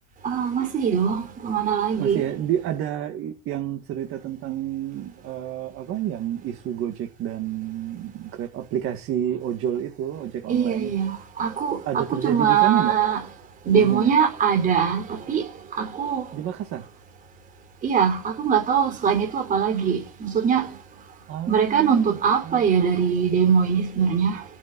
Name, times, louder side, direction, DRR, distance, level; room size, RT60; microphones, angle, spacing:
voice 1, 0.2-2.2 10.5-13.2 13.6-16.3 17.8-20.8 21.5-24.4, right 7 dB, 25° right, 4.3 m, -22 dB
voice 2, 2.0-10.9 11.9-12.9 13.7-14.1 16.3-16.9 21.3-22.1 22.4-22.6, right 11 dB, 40° right, 2.0 m, -29 dB
17.0 x 6.6 x 8.3 m
cardioid pair, 165°, 31 cm